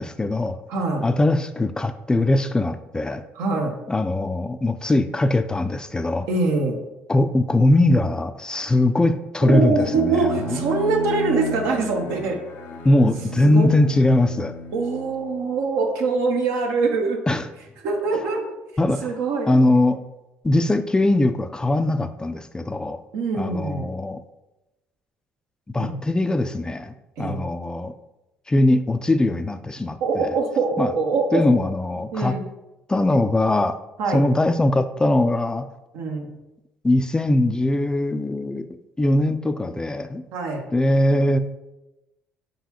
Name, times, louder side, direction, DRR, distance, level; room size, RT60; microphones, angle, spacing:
voice 1, 0.0-0.6 1.0-3.2 3.9-6.3 7.1-10.2 10.5-10.6 12.8-14.5 17.3-17.5 18.8-19.1 19.5-20.0 20.4-23.0 23.3-24.2 25.7-27.9 28.5-30.3 30.8-30.9 31.3-32.4 32.9-33.8 34.1-35.7 36.8-38.7 39.0-40.2 40.7-41.4, left 1 dB, 15° left, 10 dB, 0.3 m, -21 dB
voice 2, 0.7-1.0 3.3-3.8 6.3-6.8 9.5-12.4 13.4-13.7 14.7-17.2 17.8-18.4 19.0-19.5 23.1-23.9 25.8-26.0 27.2-27.5 30.0-31.4 32.1-32.5 34.0-34.2 35.9-36.3 40.3-40.7, right 3 dB, 75° right, 3 dB, 0.8 m, -23 dB
Bowed string instrument, 9.8-15.6, equal, 70° left, 0.6 m, -34 dB
4.5 x 3.9 x 2.9 m, 0.97 s
hypercardioid pair, 65°, 5 cm